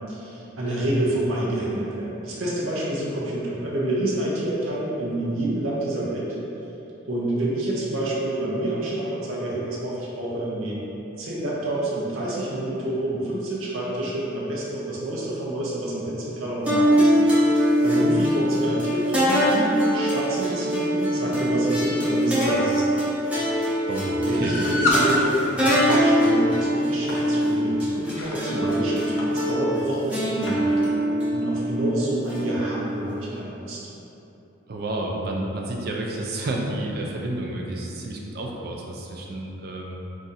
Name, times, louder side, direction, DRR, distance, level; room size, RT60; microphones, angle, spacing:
voice 1, 0.1-6.3 7.1-10.8 11.2-23.0 24.3-30.7 31.3-33.8, right 1 dB, 85° right, -6 dB, 0.6 m, -28 dB
sound 1, 16.7-33.1, equal, 5° right, 0.7 m, -23 dB
voice 2, 23.9-24.5 34.7-40.0, right 1 dB, 50° right, -1 dB, 0.4 m, -30 dB
sound 2, 24.4-25.1 25.7-26.1 27.1-27.3 28.0-28.3 29.2-29.3 29.6-29.7 30.5-30.6, left 2 dB, 85° left, 0.5 m, -26 dB
2.6 x 2.4 x 4.0 m, 3.0 s
head